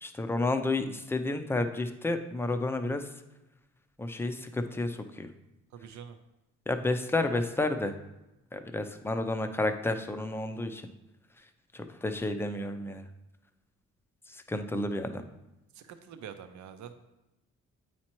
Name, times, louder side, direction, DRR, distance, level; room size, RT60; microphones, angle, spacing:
voice 1, 0.0-3.0 4.0-5.3 6.7-7.9 8.5-10.8 11.7-13.0 14.3-15.2, left 2 dB, 10° left, 7 dB, 0.5 m, -31 dB
voice 2, 5.7-6.2 15.7-16.9, right 8 dB, 70° right, 9 dB, 0.7 m, -45 dB
8.6 x 4.3 x 3.0 m, 0.98 s
cardioid pair, 90°, 30 cm